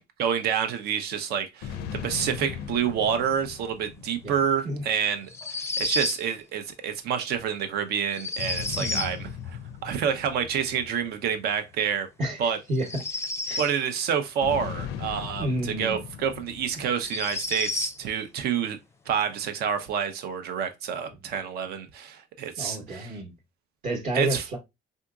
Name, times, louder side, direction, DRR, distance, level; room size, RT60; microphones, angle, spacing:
voice 1, 0.2-5.3 5.8-12.1 12.4-12.6 13.6-18.8 19.1-23.1 24.1-24.4, right 8 dB, 70° right, 0.7 m, -28 dB
sound 1, 1.6-5.2 8.4-12.0 14.4-17.8, left 8 dB, 85° left, 0.5 m, -39 dB
sound 2, 5.3-6.2 8.1-9.2 12.7-13.8 15.9-16.0 17.0-18.0, left 2 dB, 15° left, 0.5 m, -31 dB
voice 2, 8.8-9.2 12.2-13.0 13.5-13.7 15.4-16.1 22.6-23.3 23.8-24.6, right 1 dB, 50° right, 1.0 m, -30 dB
3.7 x 2.8 x 2.3 m
cardioid pair, 110°, 17 cm